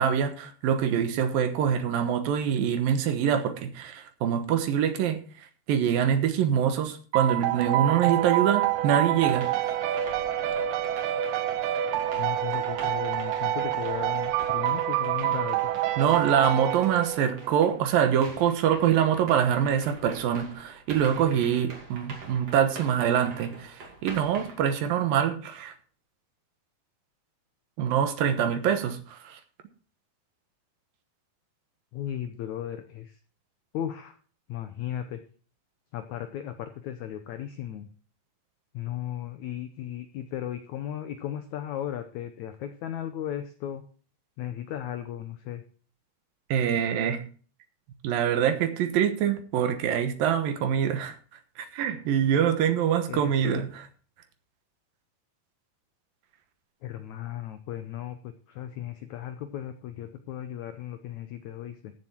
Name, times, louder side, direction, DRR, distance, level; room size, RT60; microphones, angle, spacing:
voice 1, 0.0-5.2 5.7-9.5 16.0-25.7 27.8-29.4 46.5-47.2 48.0-51.2 51.6-53.9, right 8 dB, 70° right, 2.8 m, -25 dB
sound 1, 7.1-17.5, right 12 dB, 90° right, 2.9 m, -27 dB
sound 2, 9.2-17.9 18.2-24.6, right 3 dB, 45° right, 3.4 m, -45 dB
voice 2, 12.2-15.7 31.9-33.2 33.7-34.2 34.5-35.2 35.9-37.9 38.7-43.8 44.4-45.6 53.1-53.6 56.8-61.9, left 11 dB, 90° left, 1.6 m, -36 dB
15.0 x 7.3 x 4.4 m
omnidirectional pair, 4.4 m